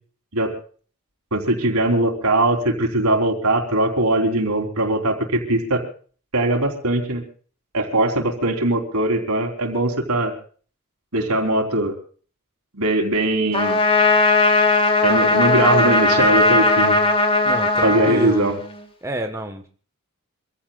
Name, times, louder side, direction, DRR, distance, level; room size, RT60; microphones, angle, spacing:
voice 1, 1.3-5.8 6.3-7.2 7.7-10.3 11.1-11.9 12.7-13.8 15.0-17.0 17.8-18.5, right 2 dB, 75° right, 3 dB, 4.0 m, -20 dB
Trumpet, 13.5-18.8, left 2 dB, 25° left, 2.9 m, -18 dB
voice 2, 17.4-18.5 19.0-19.7, right 1 dB, 15° right, 5 dB, 1.5 m, -28 dB
26.5 x 16.0 x 2.5 m, 0.42 s
head